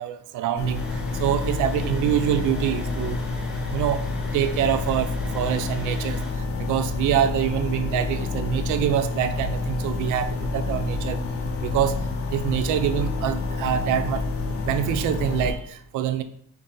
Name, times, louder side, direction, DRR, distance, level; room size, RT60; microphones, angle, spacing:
voice 1, 0.0-3.2 3.7-11.2 11.6-14.3 14.6-16.2, right 10 dB, 85° right, 10 dB, 0.5 m, -25 dB
sound 1, 0.6-15.5, left 3 dB, 50° left, 0.7 m, -28 dB
sound 2, 0.7-6.3, right 1 dB, 5° right, 0.7 m, -43 dB
3.9 x 2.7 x 3.7 m, 0.64 s
cardioid pair, 90°, 30 cm